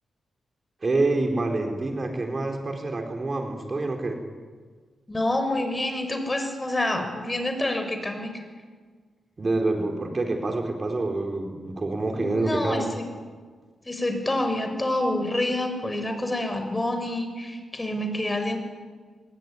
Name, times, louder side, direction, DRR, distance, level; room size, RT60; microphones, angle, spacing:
voice 1, 0.8-4.2 9.4-12.9, right 2 dB, 35° right, 3 dB, 4.5 m, -27 dB
voice 2, 5.1-8.4 12.1-13.0 13.9-18.6, left 1 dB, 20° left, 6 dB, 6.0 m, -27 dB
24.0 x 22.0 x 10.0 m, 1.5 s
cardioid pair, 80°, 0 cm